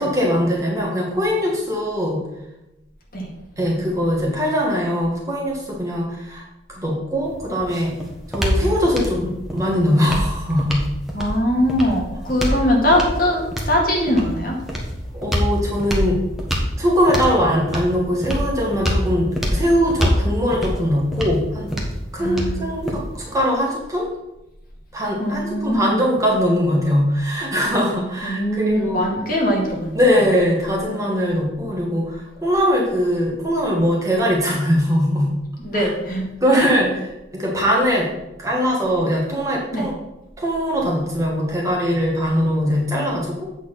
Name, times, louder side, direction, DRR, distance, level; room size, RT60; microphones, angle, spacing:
voice 1, 0.0-2.2 3.6-6.4 6.7-7.9 8.3-10.8 15.1-16.2 16.8-21.7 22.1-24.1 24.9-29.1 29.9-35.3 35.7-35.9 36.4-36.9 37.3-38.1 38.4-39.9 40.4-43.5, equal, 20° right, -3 dB, 1.7 m, -21 dB
sound 1, 7.3-23.3, equal, ahead, 1.2 m, -26 dB
voice 2, 11.1-14.5 22.2-22.8 25.2-26.1 28.2-30.0 35.6-36.2 36.6-36.7 39.7-39.8, equal, 50° left, -2 dB, 2.0 m, -21 dB
8.2 x 4.5 x 5.8 m, 0.91 s
head